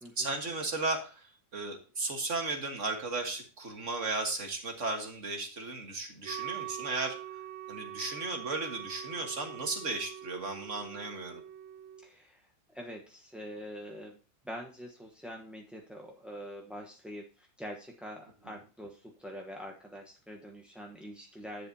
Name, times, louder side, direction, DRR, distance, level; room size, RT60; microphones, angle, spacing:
voice 1, 0.2-7.2 7.7-11.4, right 3 dB, 40° right, 4 dB, 1.8 m, -35 dB
Wind instrument woodwind instrument, 6.2-12.1, right 12 dB, 80° right, 1.4 m, -43 dB
voice 2, 12.0-14.2 14.4-21.7, equal, ahead, 0 dB, 0.7 m, -45 dB
10.5 x 7.7 x 2.8 m, 0.36 s
omnidirectional pair, 2.0 m